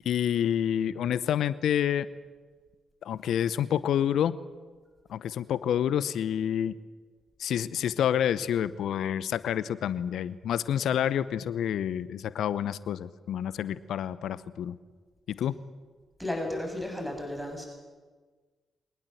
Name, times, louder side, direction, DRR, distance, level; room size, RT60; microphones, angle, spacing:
voice 1, 0.0-2.1 3.0-4.3 5.1-6.8 7.4-14.8 15.3-15.5, left 9 dB, 65° left, 17 dB, 0.8 m, -28 dB
voice 2, 16.2-17.7, left 1 dB, ahead, 2 dB, 7.4 m, -33 dB
24.5 x 19.0 x 8.0 m, 1.4 s
hypercardioid pair, 40°, 0 cm